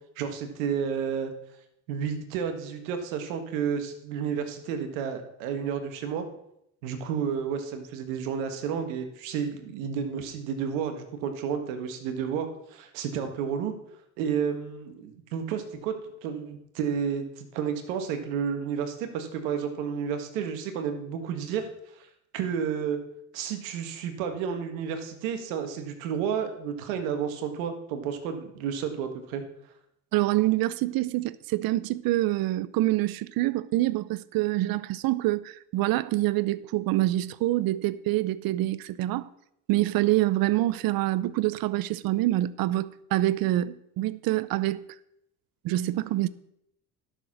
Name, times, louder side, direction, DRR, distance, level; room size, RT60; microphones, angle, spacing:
voice 1, 0.2-1.3 1.9-6.2 6.8-13.7 14.2-15.9 16.2-21.7 22.0-22.1 22.3-23.0 23.3-29.4, right 7 dB, 85° right, 1.6 m, -31 dB
voice 2, 30.1-39.3 39.7-44.9 45.6-46.3, right 16 dB, 65° right, 0.7 m, -26 dB
11.5 x 6.6 x 6.1 m
supercardioid pair, 75°, 39 cm